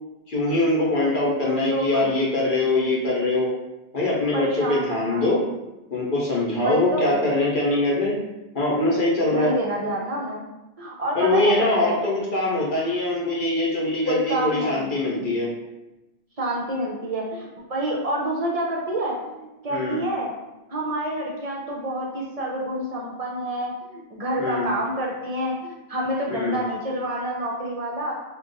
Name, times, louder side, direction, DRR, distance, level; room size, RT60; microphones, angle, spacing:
voice 1, 0.3-3.5 3.9-5.4 5.9-8.2 8.5-9.5 11.1-15.5 19.7-20.0 24.4-24.7 26.3-26.6, left 2 dB, 55° left, -5 dB, 0.9 m, -23 dB
voice 2, 1.4-2.1 4.3-5.3 6.6-7.1 9.3-10.4 10.8-11.9 14.1-14.9 16.4-20.3 20.7-28.1, right 1 dB, 45° right, -3 dB, 0.5 m, -28 dB
2.4 x 2.2 x 3.9 m, 1.0 s
omnidirectional pair, 1.1 m